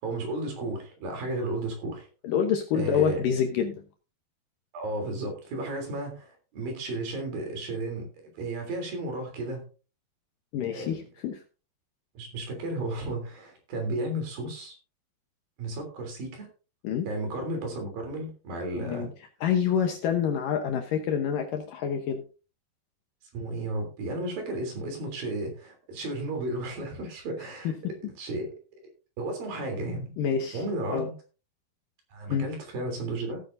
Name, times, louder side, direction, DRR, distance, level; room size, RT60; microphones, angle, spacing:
voice 1, 0.0-2.1 2.7-3.2 4.7-8.1 8.3-9.7 10.7-11.0 12.1-14.8 15.6-16.5 17.0-19.1 23.3-28.5 29.2-30.1 30.5-31.1 32.1-33.4, right 2 dB, 60° right, 3 dB, 4.9 m, -33 dB
voice 2, 2.2-3.8 10.5-11.4 16.8-17.1 18.8-19.1 19.4-22.2 27.6-27.7 30.2-30.6 30.9-31.1 32.3-32.5, left 8 dB, 70° left, 5 dB, 2.2 m, -27 dB
16.5 x 9.3 x 2.6 m, 0.34 s
omnidirectional pair, 4.8 m